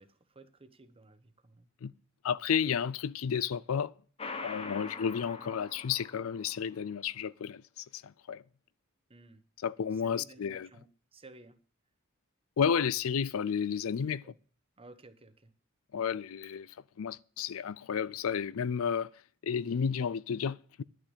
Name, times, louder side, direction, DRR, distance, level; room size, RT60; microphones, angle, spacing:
voice 1, 0.0-1.7 9.1-9.4 9.9-11.6 14.2-14.4 14.8-15.5, right 2 dB, 25° right, 1.1 m, -55 dB
voice 2, 2.2-3.9 4.4-8.4 9.6-10.7 12.6-14.2 15.9-19.1 19.4-20.8, left 7 dB, 75° left, 0.4 m, -32 dB
sound 1, 4.2-6.6, left 3 dB, 30° left, 1.1 m, -43 dB
10.5 x 6.3 x 8.1 m
head